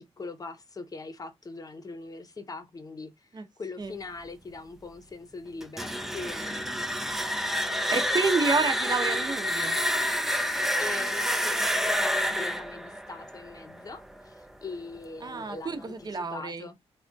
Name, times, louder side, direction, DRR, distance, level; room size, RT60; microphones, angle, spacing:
voice 1, 0.0-6.7 10.8-16.8, left 3 dB, 35° left, 0.8 m, -42 dB
sound 1, 5.6-14.4, equal, 5° right, 0.4 m, -28 dB
voice 2, 7.9-9.7 15.2-16.7, right 4 dB, 40° right, 0.8 m, -29 dB
3.5 x 2.3 x 2.5 m
cardioid pair, 85°, 11 cm